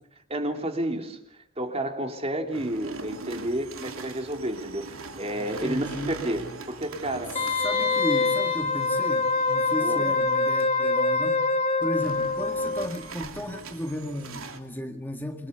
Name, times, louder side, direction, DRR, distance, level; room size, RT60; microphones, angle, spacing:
voice 1, 0.3-5.8 6.2-7.4 9.8-10.1, right 1 dB, 30° right, 4 dB, 3.2 m, -31 dB
sound 1, 2.5-10.6 11.9-14.6, right 3 dB, 90° right, 2.9 m, -41 dB
voice 2, 5.6-6.2 7.3-11.5 11.8-15.5, left 1 dB, 10° left, 4 dB, 1.9 m, -34 dB
Wind instrument woodwind instrument, 7.3-12.9 13.2-13.3, left 3 dB, 30° left, 4.1 m, -25 dB
28.5 x 23.0 x 6.9 m, 0.74 s
head